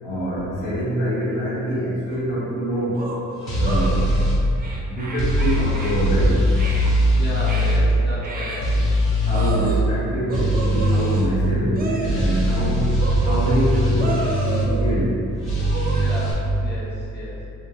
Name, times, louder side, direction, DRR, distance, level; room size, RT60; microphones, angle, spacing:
voice 1, 0.0-3.0 3.5-4.3 4.8-6.4 9.2-12.9 13.2-15.2, equal, 90° left, -10 dB, 1.5 m, -24 dB
sound 1, 2.1-2.2 2.9-3.9 4.6-6.0 6.5-6.9 7.5-7.8 8.2-8.8 9.3-9.9 10.3-11.3 11.7-12.4 13.0-13.6 14.0-15.0 15.6-16.0, right 3 dB, 30° right, 0.5 m, -32 dB
sound 2, 3.5-4.4 5.2-7.8 8.6-9.5 10.3-11.2 12.0-14.7 15.5-16.3, equal, 60° left, 1.0 m, -21 dB
voice 2, 7.1-8.7 15.9-17.5, left 1 dB, 35° left, -6 dB, 0.6 m, -33 dB
3.8 x 2.1 x 2.7 m, 2.6 s
cardioid pair, 90°, 30 cm